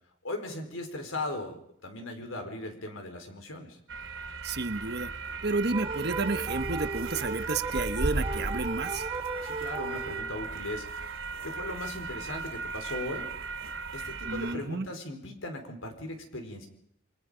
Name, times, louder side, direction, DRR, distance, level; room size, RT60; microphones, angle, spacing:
voice 1, 0.2-3.8 9.4-11.2 11.4-13.3 13.9-16.7, left 2 dB, 85° left, 5 dB, 4.7 m, -38 dB
sound 1, 3.9-14.5, right 3 dB, 75° right, 2.8 m, -36 dB
voice 2, 4.4-5.1 5.4-9.0 14.3-14.9, right 3 dB, 55° right, 10 dB, 1.3 m, -31 dB
sound 2, 5.7-10.6, right 3 dB, 25° right, 1.3 m, -37 dB
28.5 x 23.0 x 5.1 m, 0.69 s
head